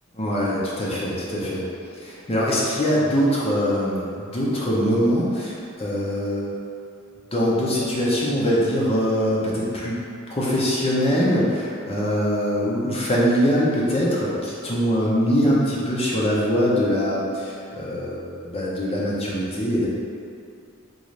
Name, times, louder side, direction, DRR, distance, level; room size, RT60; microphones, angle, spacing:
voice 1, 0.2-1.6 2.0-6.5 7.3-10.0 10.3-19.9, equal, 30° left, -6 dB, 0.6 m, -23 dB
3.8 x 2.5 x 3.1 m, 2.4 s
head